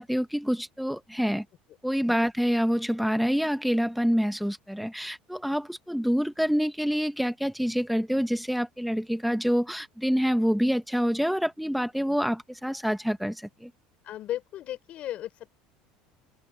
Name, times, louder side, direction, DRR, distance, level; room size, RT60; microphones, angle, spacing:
voice 1, 0.0-1.4 1.8-13.7, equal, ahead, 1.4 m, -27 dB
voice 2, 14.0-15.5, left 13 dB, 50° left, 5.0 m, -35 dB
supercardioid pair, 125°, 3 cm